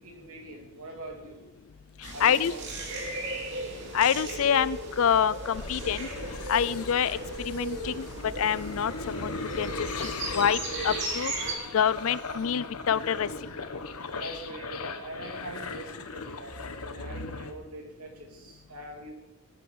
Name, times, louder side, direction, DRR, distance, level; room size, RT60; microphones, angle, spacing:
voice 1, 0.0-1.5 2.1-2.6 3.0-3.1 14.1-19.1, right 1 dB, 80° right, 2 dB, 3.0 m, -43 dB
sound 1, 2.0-11.6, right 2 dB, 55° right, 2.7 m, -36 dB
voice 2, 2.2-2.5 3.9-6.1 6.5-7.2 7.5-8.1 8.4-10.6 10.8-11.3 11.7-13.3, left 8 dB, 65° left, 19 dB, 0.4 m, -26 dB
sound 2, 5.5-17.5, left 3 dB, 85° left, 1.2 m, -38 dB
19.0 x 9.1 x 5.4 m, 1.1 s
head